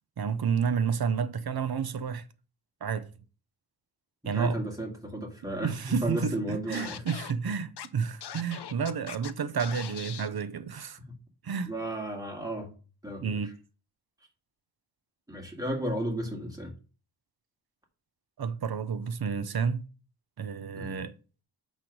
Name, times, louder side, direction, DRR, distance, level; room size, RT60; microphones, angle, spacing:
voice 1, 0.2-2.2 2.8-3.1 4.2-4.6 5.6-11.0 11.4-11.7 13.2-13.6 18.4-19.9 20.4-21.1, right 6 dB, 55° right, 0.7 m, -30 dB
voice 2, 4.2-7.0 11.0-11.1 11.7-12.7 13.0-13.5 15.3-16.7 20.8-21.0, right 1 dB, 10° right, 2.1 m, -34 dB
Scratching (performance technique), 6.7-7.3 7.8-7.9 8.2-9.3 9.6-10.3, left 9 dB, 65° left, 0.7 m, -41 dB
8.8 x 3.4 x 6.1 m
wide cardioid pair, 155°, 44 cm